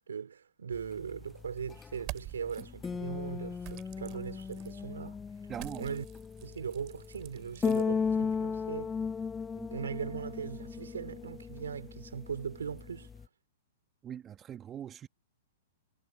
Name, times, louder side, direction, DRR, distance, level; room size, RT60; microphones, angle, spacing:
voice 1, 0.1-5.2 5.8-6.0 6.4-8.9 9.6-13.1, right 7 dB, 85° right, 4.7 m, -39 dB
sound 1, 0.7-13.3, left 5 dB, 15° left, 0.4 m, -37 dB
sound 2, 1.9-2.6 3.6-4.7 5.5-7.8, right 26 dB, 40° right, 4.3 m, -47 dB
voice 2, 5.5-5.9 9.6-9.7 14.0-15.1, right 9 dB, 25° right, 2.0 m, -42 dB
hypercardioid pair, 125°, 0 cm